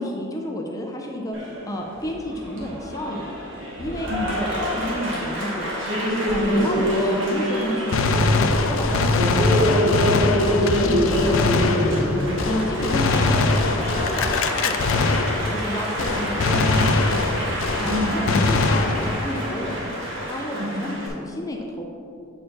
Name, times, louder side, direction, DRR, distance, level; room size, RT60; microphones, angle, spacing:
voice 1, 0.0-3.3 3.8-5.7 6.3-11.4 12.4-15.1 15.5-17.2 17.8-21.9, equal, 15° left, 1 dB, 0.5 m, -30 dB
Applause, 1.3-21.1, equal, 65° right, 1.3 m, -26 dB
Gunshot gunfire, 7.9-15.7 16.0-19.3, left 3 dB, 70° left, 0.4 m, -22 dB
voice 2, 11.4-12.8 17.9-18.4 20.6-20.9, equal, 90° right, 3 dB, 0.8 m, -32 dB
7.8 x 4.6 x 3.9 m, 2.6 s
head